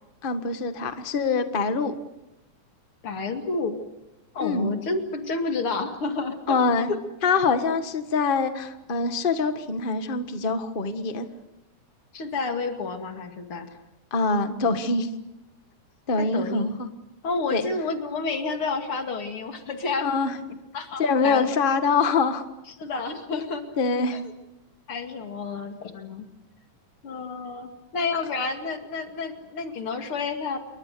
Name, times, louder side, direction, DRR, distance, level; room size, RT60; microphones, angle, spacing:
voice 1, 0.2-2.0 4.4-4.7 6.5-6.9 7.2-11.3 14.1-15.1 16.1-16.9 17.5-17.6 20.0-20.3 21.0-22.4 23.3-23.4 23.8-24.2, left 4 dB, 85° left, 8 dB, 0.4 m, -24 dB
voice 2, 3.0-3.8 4.3-7.0 12.1-13.7 16.2-16.7 17.2-20.2 20.7-21.6 22.8-23.6 24.1-24.2 24.9-26.3 27.0-30.6, left 4 dB, 45° left, 5 dB, 2.9 m, -30 dB
28.0 x 23.5 x 6.8 m, 0.96 s
omnidirectional pair, 3.6 m